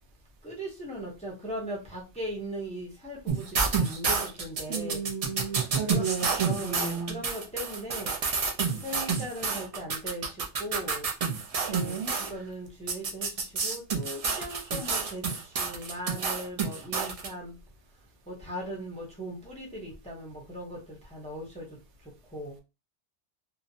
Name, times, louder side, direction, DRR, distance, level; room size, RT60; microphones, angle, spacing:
voice 1, 0.4-5.0 5.8-6.1 6.4-8.1 8.8-11.1 11.7-12.0 12.3-13.3 13.6-15.2 15.6-17.5 18.3-21.7 22.3-22.5, equal, 10° left, 0.5 m, -38 dB
sound 1, 3.3-12.3 12.9-17.3, right 5 dB, 55° right, 0.4 m, -29 dB
voice 2, 4.7-7.2 11.7-12.1, right 5 dB, 80° right, 0.9 m, -34 dB
2.7 x 2.0 x 2.6 m
omnidirectional pair, 1.2 m